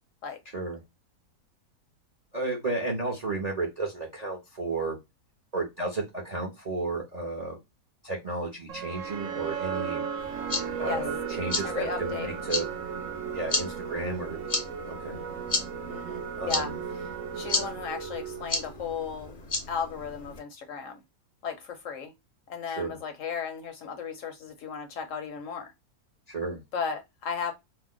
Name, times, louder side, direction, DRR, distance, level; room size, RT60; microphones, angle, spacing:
voice 1, 2.3-5.0 5.5-7.6 8.0-10.1 10.8-12.7 13.3-14.4 14.9-15.2 16.4-16.8 22.7-23.0 26.3-26.6, right 2 dB, 45° right, 0.5 m, -32 dB
sound 1, 8.7-18.9, right 7 dB, 70° right, 0.9 m, -36 dB
sound 2, 10.2-20.4, left 3 dB, 45° left, 0.4 m, -35 dB
voice 2, 11.6-12.3 15.9-16.7 17.3-19.3 19.7-21.0 21.4-22.1 22.5-25.7 26.7-27.5, left 6 dB, 70° left, 0.8 m, -35 dB
2.6 x 2.1 x 3.6 m
omnidirectional pair, 1.6 m